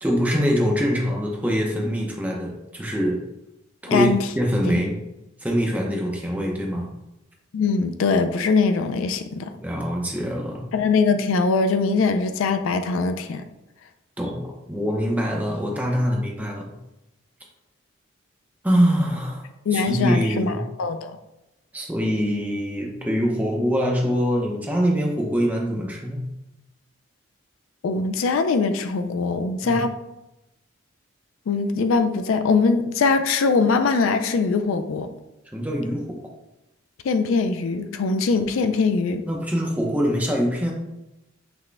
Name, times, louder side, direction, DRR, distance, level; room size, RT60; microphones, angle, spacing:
voice 1, 0.0-3.2 3.8-5.0 5.4-6.9 9.5-10.7 14.2-16.7 18.6-19.4 19.7-20.6 21.7-26.3 29.6-29.9 35.5-36.2 39.2-40.7, equal, 5° right, -1 dB, 0.6 m, -24 dB
voice 2, 3.9-4.2 7.5-9.5 10.7-13.4 19.7-20.5 20.8-21.1 27.8-29.9 31.5-35.1 37.0-39.2, left 4 dB, 75° left, 8 dB, 0.3 m, -22 dB
5.9 x 2.2 x 3.3 m, 0.93 s
head